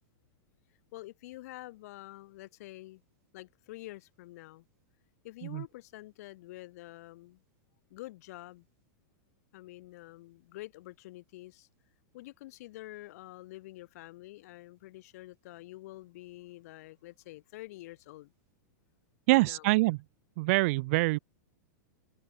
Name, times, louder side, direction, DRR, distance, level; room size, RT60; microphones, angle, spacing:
voice 1, 0.9-3.0 3.3-4.7 5.2-7.4 7.9-8.7 9.5-11.7 12.1-18.3 19.3-19.7, left 18 dB, 50° left, 5.3 m, -47 dB
voice 2, 19.3-20.0 20.4-21.2, right 23 dB, 40° right, 2.5 m, -25 dB
open air
supercardioid pair, 170°, 11 cm